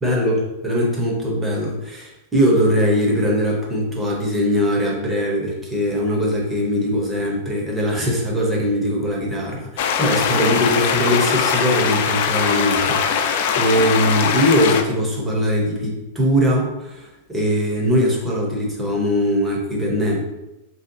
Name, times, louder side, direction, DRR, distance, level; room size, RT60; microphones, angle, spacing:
voice 1, 0.0-20.2, equal, 10° right, -3 dB, 0.7 m, -21 dB
sound 1, 9.8-14.8, left 7 dB, 55° left, 0.3 m, -21 dB
3.2 x 2.7 x 2.6 m, 0.96 s
supercardioid pair, 165°, 0 cm